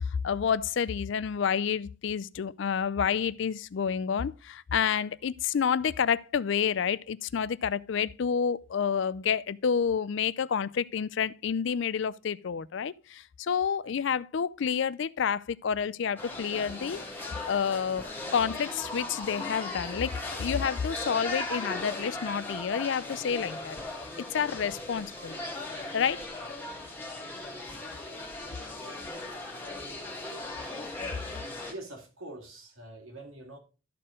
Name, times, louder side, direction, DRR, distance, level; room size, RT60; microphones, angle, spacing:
voice 1, 0.2-18.1 18.3-23.8 24.3-25.4 25.9-26.2, left 7 dB, 55° left, 0.4 m, -29 dB
sound 1, 16.2-31.7, left 2 dB, 10° left, 1.7 m, -38 dB
voice 2, 31.7-33.6, right 1 dB, 75° right, 2.3 m, -44 dB
13.0 x 4.3 x 5.0 m
head